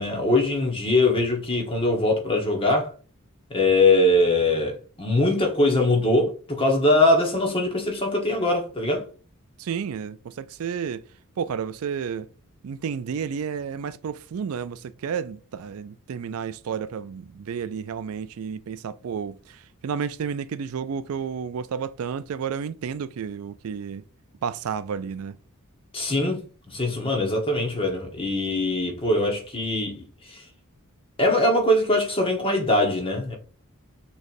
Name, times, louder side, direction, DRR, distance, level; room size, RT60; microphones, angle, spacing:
voice 1, 0.0-2.9 3.5-9.0 25.9-26.4 26.7-30.0 30.3-30.4 31.2-33.4, left 2 dB, 25° left, 1.2 m, -22 dB
voice 2, 9.6-11.0 11.4-12.3 12.6-24.0 24.4-25.4, right 7 dB, 70° right, 0.4 m, -31 dB
6.3 x 3.2 x 2.6 m
head